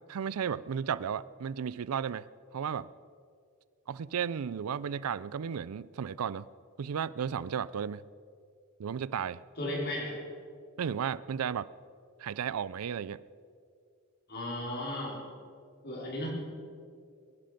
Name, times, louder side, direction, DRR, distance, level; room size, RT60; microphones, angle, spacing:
voice 1, 0.1-2.3 2.5-2.9 3.9-6.5 6.8-8.0 8.8-9.4 10.8-11.7 12.2-13.2, right 7 dB, 85° right, 19 dB, 0.4 m, -34 dB
voice 2, 9.6-10.2 14.3-15.2 15.8-16.3, left 1 dB, 50° left, -3 dB, 4.7 m, -35 dB
21.5 x 11.5 x 5.2 m, 2.3 s
head